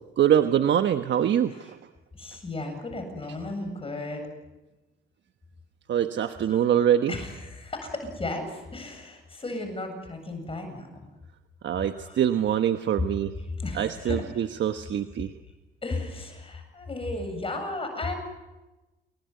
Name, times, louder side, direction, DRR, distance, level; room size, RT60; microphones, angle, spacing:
voice 1, 0.2-1.8 5.9-7.1 11.6-13.3 13.7-15.3, right 10 dB, 65° right, 8 dB, 1.2 m, -24 dB
voice 2, 2.1-4.3 6.2-6.6 7.0-10.9 12.0-12.2 12.5-12.6 13.6-14.4 14.9-15.3 15.8-18.2, left 2 dB, 30° left, 5 dB, 7.8 m, -35 dB
29.5 x 20.5 x 9.5 m, 1.1 s
cardioid pair, 90°, 20 cm